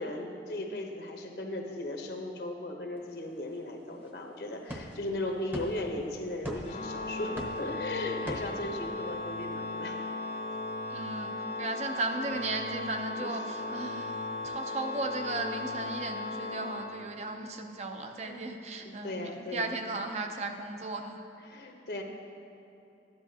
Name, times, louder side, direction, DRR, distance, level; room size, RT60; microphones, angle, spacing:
voice 1, 0.0-10.0 13.2-13.3 18.2-18.4 18.8-19.7 21.4-22.0, left 1 dB, 70° left, 2 dB, 0.9 m, -37 dB
sound 1, 3.0-11.3 13.7-14.5, equal, 10° right, 0.9 m, -45 dB
Organ, 6.6-17.5, left 2 dB, 40° left, 0.4 m, -37 dB
voice 2, 10.9-21.2, right 2 dB, 40° right, 5 dB, 0.6 m, -36 dB
12.5 x 10.5 x 2.8 m, 2.9 s
head